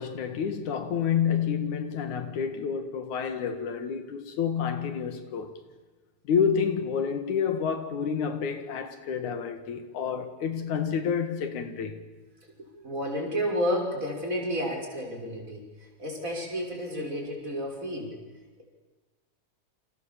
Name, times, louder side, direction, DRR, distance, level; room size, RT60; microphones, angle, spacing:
voice 1, 0.0-5.5 6.2-12.0, left 7 dB, 80° left, 3.3 m, -29 dB
voice 2, 12.6-15.6 16.0-18.2, equal, 25° right, 6.1 m, -31 dB
29.5 x 27.5 x 7.4 m
omnidirectional pair, 3.4 m